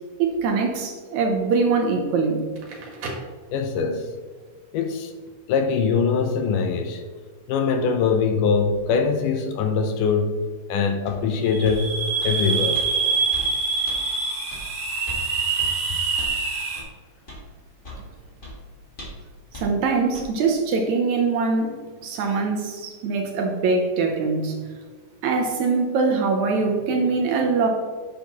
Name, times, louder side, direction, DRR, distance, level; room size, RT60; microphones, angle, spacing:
voice 1, 0.2-2.4 19.5-21.7 22.0-24.6 25.2-27.7, right 4 dB, 70° right, 2.0 m, -22 dB
Crackle, 2.5-4.1, right 2 dB, 90° right, 3.2 m, -37 dB
voice 2, 3.5-4.1 4.7-5.1 5.5-7.0 7.5-10.4 10.7-12.8, left 5 dB, 80° left, 2.2 m, -22 dB
sound 1, 11.1-11.2 11.6-11.8 12.2-12.4 12.7-12.9 13.3-13.5 13.9-14.0 14.5-14.6 15.1-15.2 15.6-15.7 16.2-16.4 16.7-16.9 17.3-17.4 17.8-18.0 18.4-18.5 19.0-19.2 19.5-19.7 20.1-20.3, left 1 dB, 20° left, 1.5 m, -38 dB
sound 2, 11.4-16.8, right 4 dB, 40° right, 1.9 m, -25 dB
9.9 x 6.7 x 3.0 m
omnidirectional pair, 3.8 m